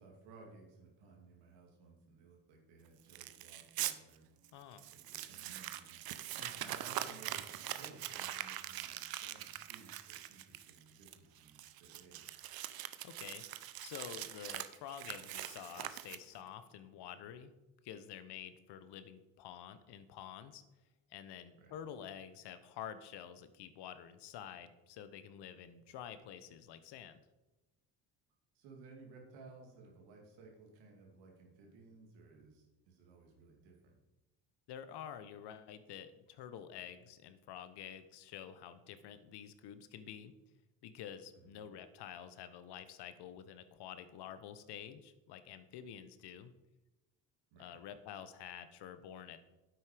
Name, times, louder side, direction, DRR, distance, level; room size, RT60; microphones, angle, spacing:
voice 1, 0.0-4.3 4.8-6.0 6.6-12.3 21.6-21.8 28.5-33.9 41.3-41.6 47.5-47.8, right 4 dB, 80° right, 0 dB, 2.8 m, -58 dB
Crumpling crinkling, 3.1-3.9 4.4-4.5 4.8-16.5, right 13 dB, 55° right, 0.8 m, -43 dB
voice 2, 4.5-4.9 6.4-6.8 13.0-13.4 13.8-17.5 17.8-20.6 21.1-27.2 34.7-40.3 40.8-46.5 47.6-49.4, left 9 dB, 65° left, 12 dB, 1.1 m, -49 dB
9.5 x 7.9 x 5.1 m, 1.0 s
supercardioid pair, 65°, 43 cm